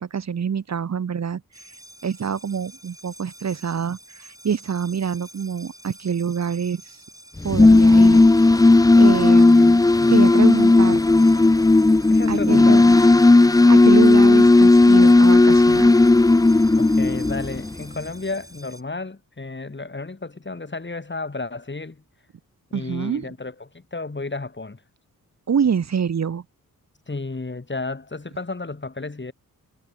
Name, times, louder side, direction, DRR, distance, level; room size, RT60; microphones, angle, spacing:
voice 1, 0.0-1.4 2.0-6.8 7.4-8.7 9.0-9.8 10.1-11.0 12.3-13.0 13.4-15.9 22.7-23.3 25.5-26.4, right 7 dB, 50° right, 1.1 m, -26 dB
sound 1, 1.5-18.8, right 1 dB, 10° right, 5.6 m, -46 dB
sound 2, 7.4-17.8, left 2 dB, 10° left, 0.5 m, -14 dB
voice 2, 9.1-10.4 12.1-13.0 16.7-22.0 22.7-24.8 27.1-29.3, left 3 dB, 30° left, 7.1 m, -32 dB
cardioid pair, 55°, 34 cm